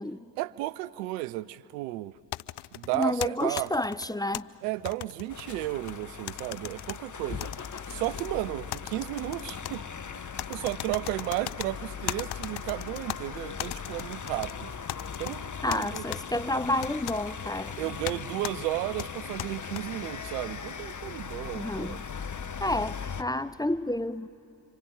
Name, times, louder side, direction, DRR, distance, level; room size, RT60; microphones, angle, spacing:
voice 1, 0.4-2.1 2.7-3.7 4.6-7.5 7.9-9.8 10.5-14.7 15.2-16.0 17.8-22.0, right 17 dB, 90° right, 0.5 m, -33 dB
sound 1, 2.3-4.4 4.9-6.0 6.3-7.0 7.4-8.3 8.7-9.8 10.4-11.7 12.1-13.2 13.6-14.5 14.9-15.4 15.7-16.2 16.8-17.2 18.1-18.2 18.4-18.6 19.0-19.8, left 15 dB, 60° left, 0.6 m, -37 dB
voice 2, 2.9-4.5 15.6-17.8 21.5-22.0 22.6-24.3, left 1 dB, 10° left, 0.6 m, -30 dB
sound 2, 5.3-23.2, left 6 dB, 40° left, 1.3 m, -39 dB
25.5 x 25.0 x 9.1 m
hypercardioid pair, 40°, 46 cm